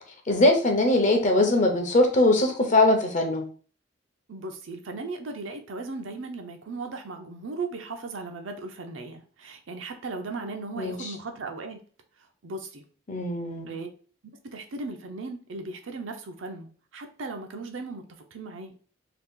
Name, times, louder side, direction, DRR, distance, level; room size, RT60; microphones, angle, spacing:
voice 1, 0.3-3.4 10.8-11.1 13.1-13.7, left 2 dB, 40° left, 3 dB, 0.7 m, -21 dB
voice 2, 4.3-11.8 12.4-12.8 13.7-13.9 14.4-16.7 16.9-18.0 18.3-18.7, right 3 dB, 80° right, 5 dB, 0.6 m, -37 dB
2.9 x 2.3 x 3.6 m, 0.41 s
head